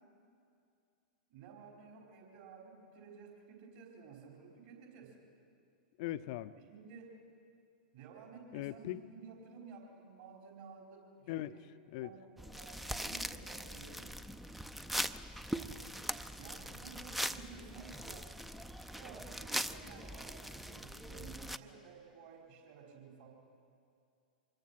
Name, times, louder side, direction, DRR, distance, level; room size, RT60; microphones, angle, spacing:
voice 1, 1.3-5.2 6.7-7.2 7.9-11.5 12.0-14.0 16.4-18.3 18.9-23.3, right 5 dB, 50° right, -1 dB, 4.8 m, -54 dB
voice 2, 6.0-6.5 8.5-9.1 11.3-11.5 11.9-12.1, left 14 dB, 45° left, 15 dB, 0.6 m, -39 dB
sound 1, 12.4-21.6, equal, ahead, 0.6 m, -41 dB
25.0 x 21.5 x 5.8 m, 2.4 s
figure-of-eight pair, 95°, 5 cm